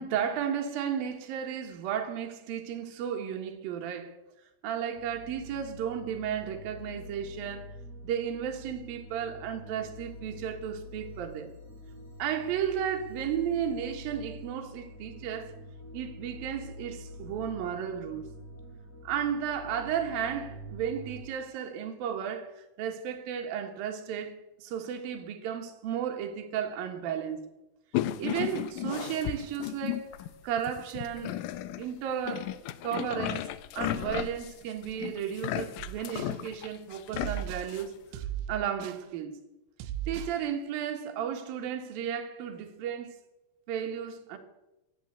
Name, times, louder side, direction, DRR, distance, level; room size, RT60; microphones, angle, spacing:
voice 1, 0.0-4.2 4.6-7.7 8.0-11.5 12.2-15.5 15.9-18.3 19.0-27.5 28.2-30.1 30.4-31.4 31.8-32.6 32.8-38.2 38.5-39.4 40.1-43.2 43.7-44.4, right 8 dB, 65° right, 3.3 m, -34 dB
sound 1, 4.9-21.2, equal, 45° right, 7.3 m, -46 dB
sound 2, 27.9-30.3 30.6-31.9 32.3-37.9, left 13 dB, 80° left, 1.9 m, -34 dB
sound 3, 35.8-36.4 37.1-37.7 38.1-39.1 39.8-40.4, right 11 dB, 90° right, 2.9 m, -37 dB
16.0 x 11.0 x 8.1 m
omnidirectional pair, 4.6 m